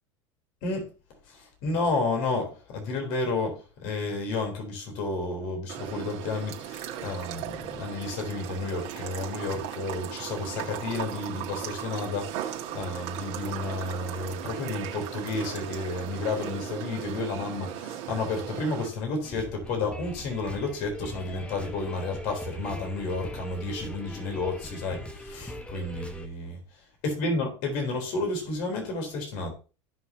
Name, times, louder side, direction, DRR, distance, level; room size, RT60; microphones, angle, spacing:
voice 1, 1.3-26.6 27.0-29.5, left 3 dB, 55° left, 3.8 m, -31 dB
sound 1, 5.7-18.9, right 11 dB, 60° right, 1.9 m, -37 dB
sound 2, 19.2-26.3, equal, 5° left, 1.3 m, -41 dB
15.0 x 5.9 x 2.9 m
hypercardioid pair, 80°, 16 cm